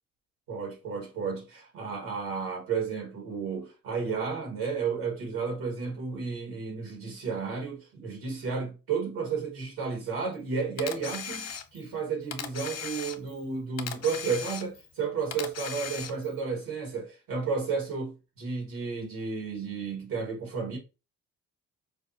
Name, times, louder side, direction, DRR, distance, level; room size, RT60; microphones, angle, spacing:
voice 1, 0.5-20.8, right 5 dB, 75° right, 1.9 m, -32 dB
Camera, 10.8-11.9 12.3-13.4 13.8-14.9 15.3-16.4, left 7 dB, 45° left, 0.7 m, -38 dB
4.8 x 2.0 x 2.8 m
supercardioid pair, 60°, 35 cm